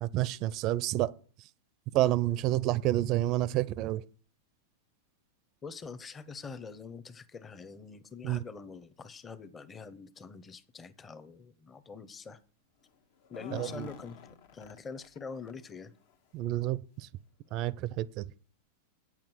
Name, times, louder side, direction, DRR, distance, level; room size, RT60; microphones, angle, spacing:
voice 1, 0.0-1.1 1.9-4.0 8.2-8.4 13.5-13.9 16.3-17.1 17.5-18.3, right 15 dB, 40° right, 0.5 m, -29 dB
voice 2, 5.6-12.4 13.3-14.2 14.5-15.9, left 5 dB, 20° left, 0.8 m, -44 dB
sound 1, 13.2-15.2 15.5-15.6 16.0-16.2 17.0-17.1 17.5-17.6, left 6 dB, 65° left, 1.2 m, -48 dB
8.7 x 7.3 x 6.2 m
supercardioid pair, 135°, 0 cm